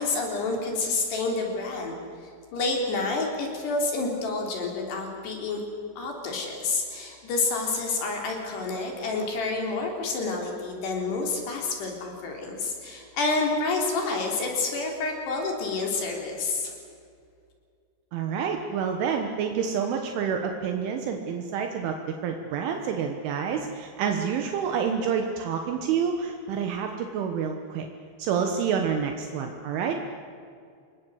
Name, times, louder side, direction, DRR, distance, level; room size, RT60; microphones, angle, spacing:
voice 1, 0.0-5.6 6.0-16.8, left 3 dB, 55° left, 1 dB, 5.3 m, -29 dB
voice 2, 18.1-27.9 28.2-30.0, right 7 dB, 75° right, 4 dB, 3.7 m, -28 dB
26.5 x 21.0 x 8.1 m, 2.3 s
omnidirectional pair, 5.8 m